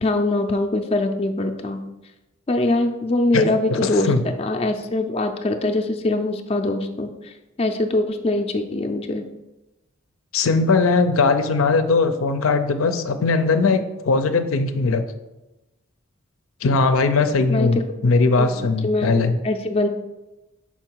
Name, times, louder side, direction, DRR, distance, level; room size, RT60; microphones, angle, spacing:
voice 1, 0.0-1.8 2.5-4.1 4.4-9.3 17.5-17.8 18.4-19.1 19.4-19.9, left 2 dB, 30° left, 5 dB, 0.4 m, -23 dB
voice 2, 3.7-4.2 10.3-15.0 16.6-19.4, left 3 dB, 90° left, 9 dB, 0.5 m, -19 dB
5.8 x 4.8 x 4.5 m, 1.0 s
head